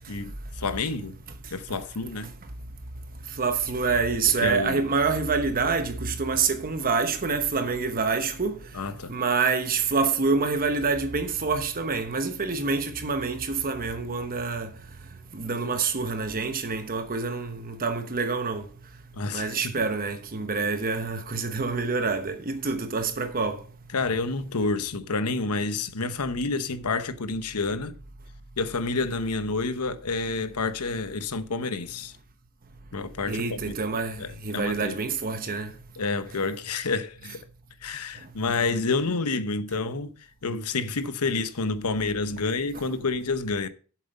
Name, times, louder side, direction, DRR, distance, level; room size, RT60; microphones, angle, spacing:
voice 1, 0.1-1.2 1.5-2.3 4.4-4.9 8.7-9.1 19.1-19.8 23.9-28.0 28.6-32.2 32.9-33.8 34.2-35.0 36.0-37.4 37.8-43.7, left 3 dB, 85° left, 0.9 m, -29 dB
voice 2, 3.4-8.6 9.1-14.7 15.3-18.6 19.3-23.6 33.3-34.2 34.4-35.7, right 4 dB, 40° right, 1.0 m, -26 dB
7.6 x 7.4 x 5.4 m
head